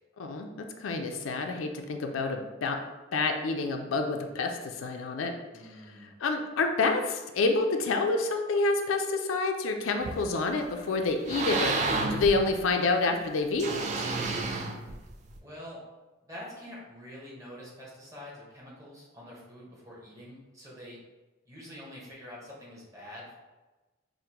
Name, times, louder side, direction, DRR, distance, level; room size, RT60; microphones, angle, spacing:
voice 1, 0.2-2.8 3.1-5.3 6.2-13.9, left 3 dB, 85° left, 4 dB, 0.4 m, -28 dB
voice 2, 5.5-6.1 15.4-15.8 16.3-21.0 21.5-23.3, left 1 dB, 15° right, -5 dB, 0.9 m, -46 dB
sound 1, 10.0-10.6 11.0-12.9 13.6-15.4, right 3 dB, 35° right, 0.3 m, -31 dB
4.9 x 2.1 x 2.9 m, 1.2 s
head